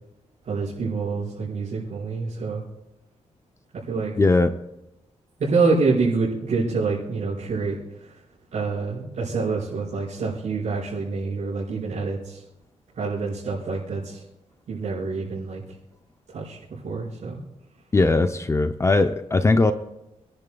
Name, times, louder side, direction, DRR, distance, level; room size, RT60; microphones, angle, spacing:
voice 1, 0.4-2.6 3.8-4.1 5.4-8.2 8.5-12.4 12.9-14.2 14.7-15.6 16.3-17.4, right 4 dB, 75° right, -11 dB, 4.9 m, -26 dB
voice 2, 4.2-4.5 17.9-19.7, left 3 dB, 25° left, 9 dB, 0.5 m, -19 dB
28.5 x 10.5 x 2.3 m, 0.91 s
wide cardioid pair, 105°, 12 cm